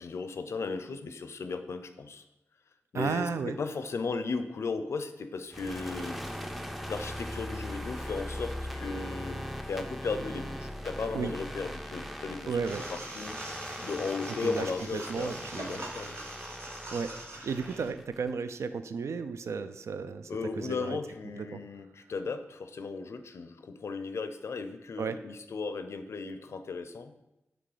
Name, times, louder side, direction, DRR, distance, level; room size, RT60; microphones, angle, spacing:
voice 1, 0.0-2.2 2.9-6.2 6.9-9.4 9.7-12.6 12.9-13.4 13.8-16.2 20.3-27.1, left 4 dB, 75° left, 10 dB, 0.5 m, -36 dB
voice 2, 2.9-3.6 11.1-11.3 12.5-12.8 14.4-15.8 16.9-17.1 17.4-20.3 20.6-21.0 21.4-21.6 25.0-25.2, right 5 dB, 85° right, 11 dB, 0.3 m, -33 dB
sound 1, 5.5-18.3, equal, ahead, 0.4 m, -40 dB
sound 2, 12.6-17.9, right 2 dB, 65° right, 1.2 m, -43 dB
6.0 x 3.3 x 4.9 m, 0.90 s
wide cardioid pair, 95°, 5 cm